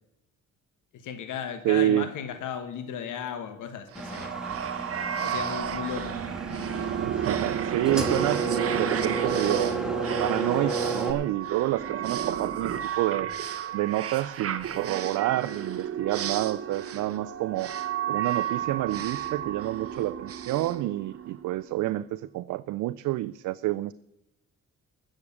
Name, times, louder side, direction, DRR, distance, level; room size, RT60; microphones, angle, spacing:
voice 1, 0.9-4.4 5.2-6.2, left 8 dB, 85° left, 9 dB, 1.3 m, -35 dB
voice 2, 1.6-2.1 7.0-13.3 13.7-17.7 18.1-23.9, right 15 dB, 75° right, 14 dB, 0.4 m, -28 dB
sound 1, 3.9-21.6, right 9 dB, 50° right, 1.0 m, -32 dB
Engine, 4.0-11.1, right 3 dB, ahead, 1.7 m, -32 dB
15.5 x 6.5 x 8.4 m, 0.89 s
cardioid pair, 90°, 30 cm